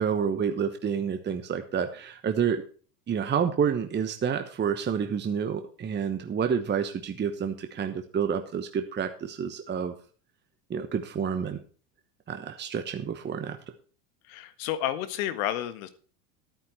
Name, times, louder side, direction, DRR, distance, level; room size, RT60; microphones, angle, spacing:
voice 1, 0.0-2.6 3.1-9.9 10.7-11.6 12.3-13.6, right 7 dB, 20° right, 8 dB, 1.0 m, -29 dB
voice 2, 14.3-15.9, left 12 dB, 60° left, 12 dB, 1.6 m, -31 dB
11.5 x 9.4 x 4.6 m, 0.41 s
hypercardioid pair, 80°, 47 cm